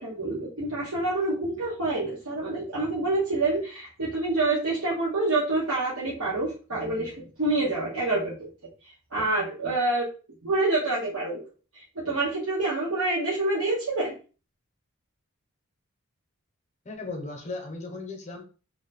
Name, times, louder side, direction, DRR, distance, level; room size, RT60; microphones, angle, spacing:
voice 1, 0.0-8.5 9.1-10.1 10.4-11.4 11.7-14.1, right 2 dB, 80° right, -7 dB, 1.1 m, -27 dB
voice 2, 16.8-18.4, left 3 dB, 30° left, 3 dB, 0.6 m, -36 dB
3.0 x 2.2 x 4.0 m, 0.36 s
head